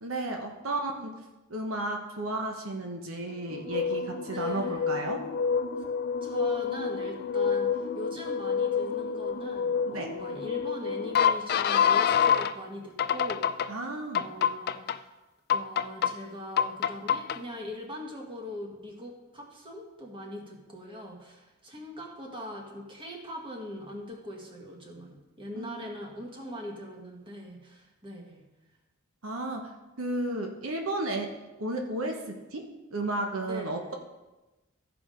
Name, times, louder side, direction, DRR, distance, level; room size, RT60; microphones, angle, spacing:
voice 1, 0.0-1.1 1.5-5.2 9.8-10.1 13.7-14.2 25.5-25.8 29.2-29.7 30.0-32.7 32.9-33.9, right 2 dB, 75° right, 2 dB, 1.1 m, -33 dB
sound 1, 3.5-12.5 13.0-13.7 14.1-15.0 15.5-16.1 16.6-17.4, left 7 dB, 50° left, 0.4 m, -27 dB
voice 2, 4.3-4.9 5.8-5.9 6.2-13.8 14.2-15.1 15.5-28.4 33.5-33.9, left 1 dB, 25° right, 0 dB, 1.7 m, -41 dB
14.0 x 5.0 x 5.0 m, 1.1 s
head